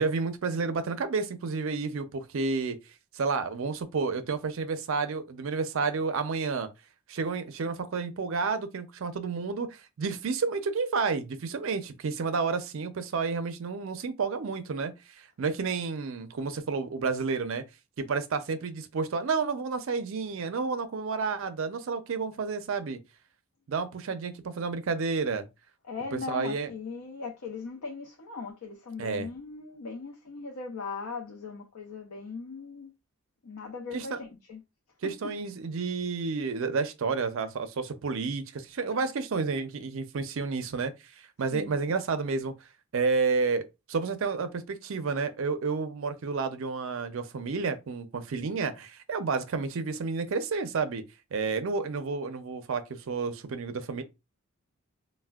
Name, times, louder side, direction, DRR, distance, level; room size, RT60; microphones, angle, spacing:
voice 1, 0.0-2.8 3.1-6.7 7.1-17.6 18.0-23.0 23.7-25.5 26.1-26.7 29.0-29.3 33.9-34.2 35.0-42.5 42.9-51.0 51.3-54.0, right 4 dB, 65° right, 0.4 m, -30 dB
voice 2, 25.9-32.9 33.4-34.6 35.0-35.3 41.5-41.9, left 4 dB, 75° left, 0.5 m, -39 dB
4.1 x 2.1 x 2.3 m
head